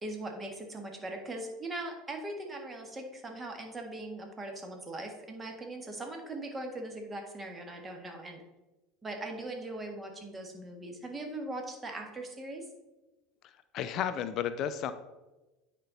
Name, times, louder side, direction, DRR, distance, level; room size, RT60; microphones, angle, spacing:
voice 1, 0.0-8.4 9.0-12.6, right 2 dB, 20° right, 3 dB, 1.6 m, -40 dB
voice 2, 13.7-14.9, left 9 dB, 50° left, 11 dB, 0.4 m, -32 dB
9.4 x 4.5 x 4.0 m, 1.1 s
hypercardioid pair, 80°, 0 cm